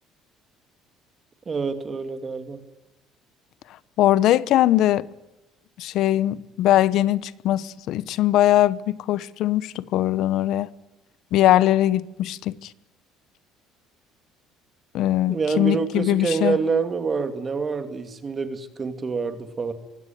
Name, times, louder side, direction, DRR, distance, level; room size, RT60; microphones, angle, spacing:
voice 1, 1.5-2.6 15.3-19.7, right 5 dB, 25° right, 2.5 m, -26 dB
voice 2, 4.0-5.1 5.8-10.7 11.3-12.7 14.9-16.6, left 13 dB, 65° left, 1.0 m, -21 dB
24.0 x 16.5 x 9.3 m
cardioid pair, 130°, 0 cm